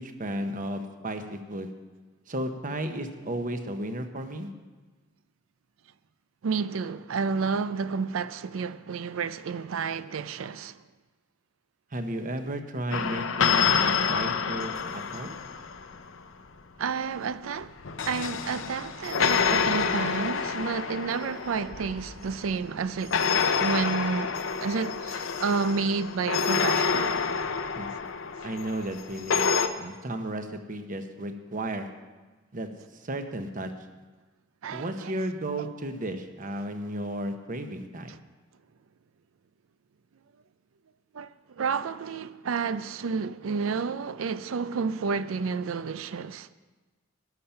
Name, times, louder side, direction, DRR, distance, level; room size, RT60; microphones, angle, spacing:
voice 1, 0.0-1.7 2.3-4.5 11.9-15.4 27.8-27.9 28.4-29.5 29.8-31.9 32.5-33.7 34.7-38.2, right 1 dB, 40° right, 1.0 m, -34 dB
voice 2, 6.4-10.8 16.8-17.7 18.0-23.2 23.6-24.3 24.6-27.2 34.6-35.1 38.1-38.2 41.1-46.5, right 5 dB, 85° right, 0.4 m, -30 dB
sound 1, 12.9-16.1 17.6-22.5 23.1-29.7, left 6 dB, 70° left, 0.7 m, -28 dB
13.0 x 10.0 x 5.7 m
head